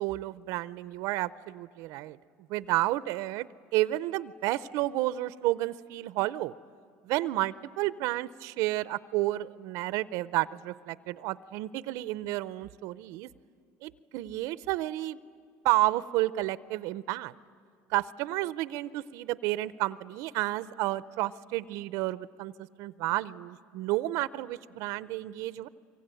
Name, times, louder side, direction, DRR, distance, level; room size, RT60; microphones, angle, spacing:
voice 1, 0.0-2.2 2.5-3.5 3.7-6.5 7.0-13.3 13.8-15.2 15.6-17.3 17.9-25.7, right 17 dB, 75° right, 16 dB, 0.6 m, -31 dB
25.0 x 24.0 x 9.1 m, 2.2 s
supercardioid pair, 110°, 6 cm